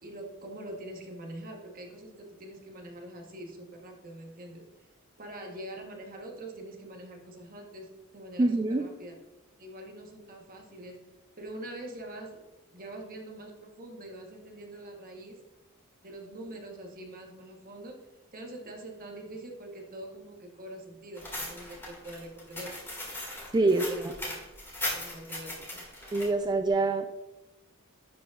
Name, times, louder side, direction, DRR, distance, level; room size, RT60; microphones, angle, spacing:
voice 1, 0.0-4.7 5.2-9.2 9.6-11.0 11.4-12.4 12.7-15.4 16.0-23.1 23.6-24.4 24.9-25.8, right 1 dB, 45° right, 2 dB, 1.0 m, -44 dB
voice 2, 8.4-8.8 23.5-23.9 26.1-27.1, right 2 dB, 20° right, 6 dB, 0.3 m, -25 dB
sound 1, 21.2-26.3, left 1 dB, 10° left, 1.9 m, -38 dB
10.5 x 5.0 x 2.3 m, 1.1 s
head